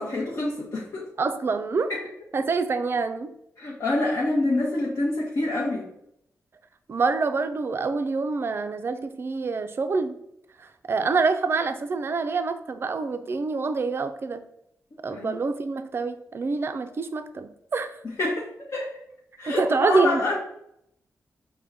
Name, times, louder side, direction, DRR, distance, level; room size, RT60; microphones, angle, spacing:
voice 1, 0.0-1.1 1.9-2.0 3.6-5.9 15.1-15.3 18.0-19.0 19.4-20.4, left 2 dB, 55° left, -6 dB, 0.8 m, -27 dB
voice 2, 1.2-1.9 2.3-3.3 6.9-10.2 10.9-14.5 15.0-18.0 19.5-20.2, right 4 dB, 40° right, 9 dB, 0.4 m, -26 dB
5.1 x 2.2 x 3.5 m, 0.76 s
wide cardioid pair, 115°, 6 cm